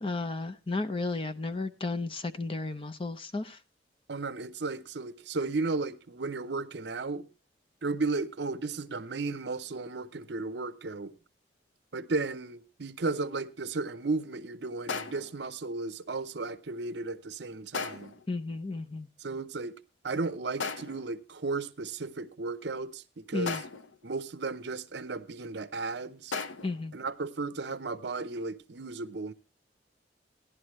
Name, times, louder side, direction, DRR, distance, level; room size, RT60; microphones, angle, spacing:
voice 1, 0.0-3.4 18.3-19.1 23.3-23.6 26.6-26.9, left 3 dB, 30° left, 0.6 m, -33 dB
voice 2, 4.1-7.3 7.8-11.1 11.9-18.1 19.2-19.7 20.0-23.7 24.0-26.3 26.9-29.3, right 3 dB, 60° right, 0.7 m, -34 dB
sound 1, 14.9-15.4 17.7-18.3 20.6-21.2 23.5-24.0 26.3-26.8, left 5 dB, 80° left, 0.8 m, -36 dB
16.0 x 11.0 x 3.1 m
head